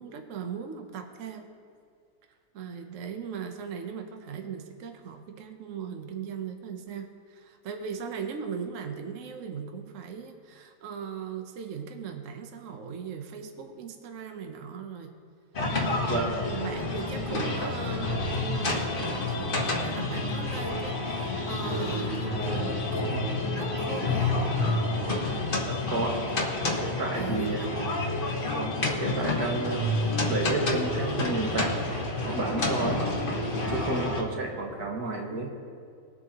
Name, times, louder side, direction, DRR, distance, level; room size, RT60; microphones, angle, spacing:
voice 1, 0.0-1.5 2.5-15.1 15.8-16.1 16.4-24.4 27.1-27.9 32.8-33.2, right 6 dB, 60° right, 5 dB, 1.1 m, -39 dB
sound 1, 15.5-34.2, left 2 dB, 35° left, 1.3 m, -29 dB
voice 2, 25.7-26.2 26.8-27.6 28.5-30.0 30.3-31.8 32.2-33.0 33.7-35.5, right 2 dB, 85° right, 0 dB, 2.0 m, -31 dB
20.5 x 7.8 x 2.9 m, 2.3 s
omnidirectional pair, 1.6 m